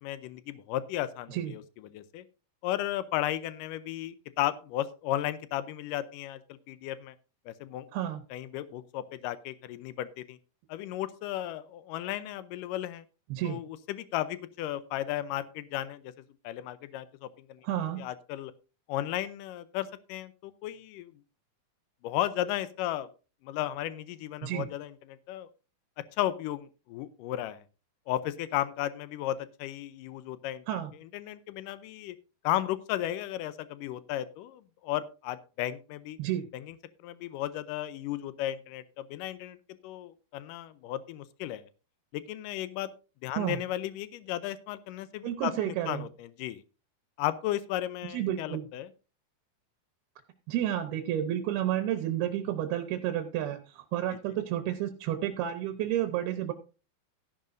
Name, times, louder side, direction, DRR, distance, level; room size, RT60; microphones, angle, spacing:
voice 1, 0.0-1.6 1.9-2.2 2.6-6.4 6.7-7.2 7.5-7.9 8.3-10.4 10.7-13.0 13.4-16.1 16.4-17.6 18.0-18.5 18.9-21.1 22.0-23.1 23.4-25.5 26.2-27.6 28.1-30.6 31.1-32.2 32.4-36.2 36.5-36.8 37.0-39.6 39.8-41.6 42.1-42.9 43.2-46.6 47.2-48.9, left 13 dB, 85° left, 14 dB, 1.9 m, -34 dB
voice 2, 17.6-18.0 24.4-24.7 30.7-30.9 36.2-36.4 43.4-43.6 45.2-46.1 48.1-48.6 50.5-56.5, right 11 dB, 75° right, 7 dB, 2.8 m, -31 dB
14.0 x 11.0 x 2.6 m, 0.32 s
omnidirectional pair, 4.6 m